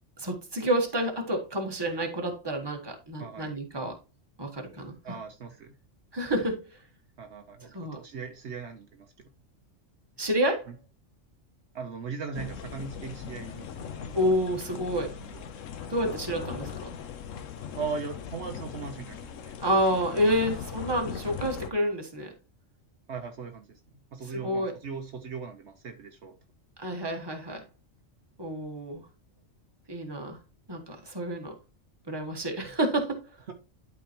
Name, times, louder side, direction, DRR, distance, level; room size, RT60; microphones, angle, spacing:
voice 1, 0.2-3.9 4.4-5.2 6.1-6.7 7.7-8.0 10.2-10.7 14.1-15.2 15.9-16.9 19.6-22.3 24.3-24.7 26.8-27.6 28.4-29.0 29.9-30.4 30.7-31.5 32.1-33.2, equal, 20° right, 1.4 m, -29 dB
voice 2, 3.2-3.5 5.0-5.7 7.2-9.1 11.7-14.2 15.0-15.4 17.7-19.5 23.1-23.7 24.1-26.3 33.5-33.6, right 5 dB, 65° right, 1.1 m, -39 dB
sound 1, 12.3-21.7, left 7 dB, 80° left, 1.1 m, -39 dB
11.5 x 4.4 x 2.9 m
omnidirectional pair, 1.3 m